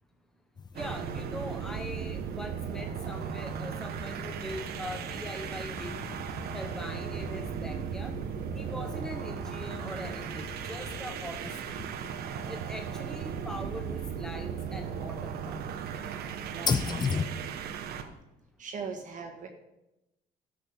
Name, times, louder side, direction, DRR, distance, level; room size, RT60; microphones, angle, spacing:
sound 1, 0.6-17.3, left 5 dB, 25° left, 0.6 m, -40 dB
voice 1, 0.7-6.0 6.5-8.1 8.5-11.6 12.5-15.6, left 1 dB, 5° left, 5 dB, 0.9 m, -42 dB
sound 2, 0.7-18.1, right 8 dB, 70° right, 1.0 m, -37 dB
voice 2, 16.0-17.4 18.6-19.5, right 5 dB, 50° right, 3 dB, 1.6 m, -42 dB
12.5 x 6.3 x 5.3 m, 0.92 s
cardioid pair, 110°, 17 cm